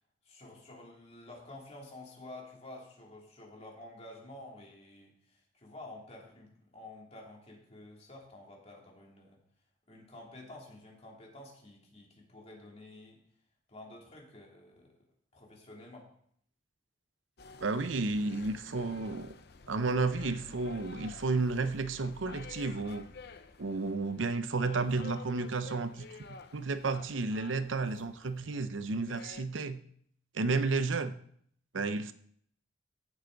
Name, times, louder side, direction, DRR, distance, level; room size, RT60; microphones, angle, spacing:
voice 1, 0.2-9.4 9.9-13.2 13.7-14.9 15.3-16.1, left 2 dB, 35° left, -1 dB, 2.9 m, -50 dB
sound 1, 17.4-29.5, left 4 dB, 55° left, 0.8 m, -51 dB
voice 2, 17.6-19.3 19.7-23.1 23.6-29.8 30.3-31.2 31.7-32.1, right 3 dB, 85° right, 11 dB, 0.7 m, -32 dB
15.5 x 8.1 x 4.0 m, 0.65 s
head